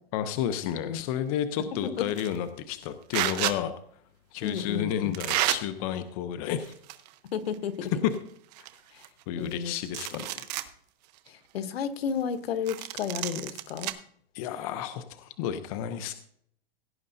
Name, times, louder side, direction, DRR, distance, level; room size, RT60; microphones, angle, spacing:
voice 1, 0.1-3.7 4.3-6.7 9.3-10.5 14.3-16.1, left 10 dB, 35° left, 9 dB, 0.7 m, -31 dB
sound 1, 2.1-2.4 3.1-3.6 4.5-4.6 5.1-5.6 6.5-7.1 7.5-7.6 8.1-8.2 8.5-9.5 9.9-10.7 11.2-11.3 12.7-13.9, right 15 dB, 45° right, 0.9 m, -31 dB
voice 2, 4.4-5.1 7.2-7.9 8.9-9.0 9.4-9.7 10.1-10.2 11.3-13.9, left 7 dB, 90° left, 12 dB, 1.1 m, -32 dB
17.0 x 9.9 x 2.7 m, 0.64 s
supercardioid pair, 155°, 30 cm